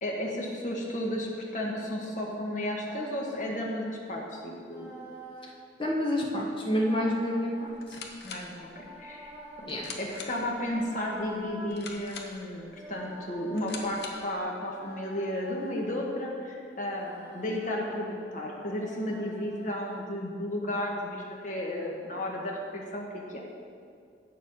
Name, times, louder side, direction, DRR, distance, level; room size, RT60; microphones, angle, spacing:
voice 1, 0.0-4.9 8.2-9.3 9.6-23.4, left 1 dB, 45° left, -2 dB, 1.5 m, -33 dB
sound 1, 2.6-3.7 4.6-5.6 6.6-7.9 8.7-9.9 10.7-11.7 12.6-13.8 14.6-16.0 16.6-17.7 18.6-20.0, equal, 15° right, 1.5 m, -47 dB
voice 2, 5.8-8.0 9.7-9.8, equal, 30° left, -2 dB, 1.4 m, -28 dB
sound 2, 7.7-14.4, left 4 dB, 60° left, 1.0 m, -45 dB
8.4 x 6.9 x 5.5 m, 2.2 s
head